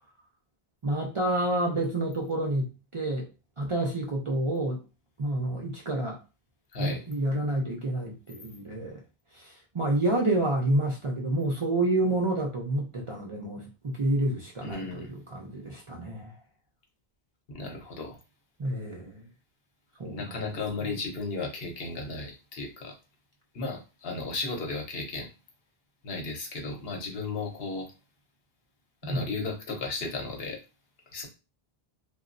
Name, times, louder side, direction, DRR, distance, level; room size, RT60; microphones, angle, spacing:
voice 1, 0.8-3.3 3.6-4.8 5.2-6.2 6.8-9.0 9.3-16.4 18.6-19.3 20.0-20.6 29.0-29.3, right 1 dB, 45° right, 0.4 m, -29 dB
voice 2, 6.7-7.0 14.6-15.1 17.5-18.2 20.0-22.9 23.5-25.3 26.0-27.9 29.0-30.6 31.1-31.3, left 3 dB, 75° left, 1.0 m, -35 dB
2.9 x 2.3 x 2.5 m
omnidirectional pair, 1.0 m